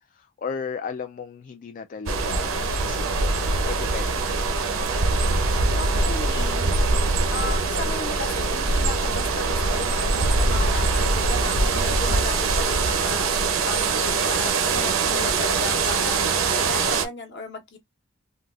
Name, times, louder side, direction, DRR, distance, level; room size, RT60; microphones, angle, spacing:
voice 1, 0.0-3.3 3.6-4.3, left 6 dB, 40° left, 0.3 m, -35 dB
sound 1, 2.1-17.0, right 3 dB, 75° right, 0.7 m, -23 dB
voice 2, 5.8-6.7 7.3-13.3 13.6-16.3 16.5-17.8, left 3 dB, 55° left, 1.0 m, -35 dB
3.8 x 2.3 x 2.4 m
head